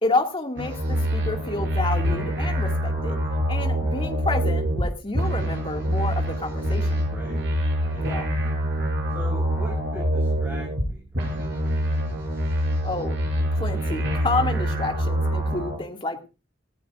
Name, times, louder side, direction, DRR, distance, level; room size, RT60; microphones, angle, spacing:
voice 1, 0.0-3.2 3.5-6.9 8.0-8.3 12.8-13.2 13.5-16.3, left 2 dB, 30° left, 3 dB, 2.3 m, -29 dB
sound 1, 0.6-4.9 5.1-10.9 11.1-15.8, equal, 65° right, 6.8 m, -25 dB
voice 2, 3.6-4.0 6.5-7.4 7.8-8.2 9.1-12.1, left 1 dB, 10° right, -3 dB, 6.8 m, -42 dB
18.5 x 14.5 x 2.6 m, 0.31 s
head